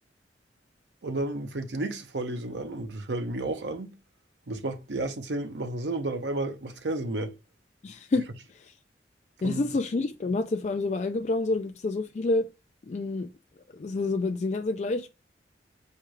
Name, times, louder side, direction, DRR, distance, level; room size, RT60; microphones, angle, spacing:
voice 1, 1.0-3.9 4.5-7.3 9.4-9.6, right 2 dB, 75° right, 0.7 m, -32 dB
voice 2, 7.8-8.2 8.5-8.7 9.4-12.5 12.9-13.3 13.7-15.1, left 3 dB, 40° left, 0.3 m, -28 dB
4.5 x 2.3 x 4.7 m
head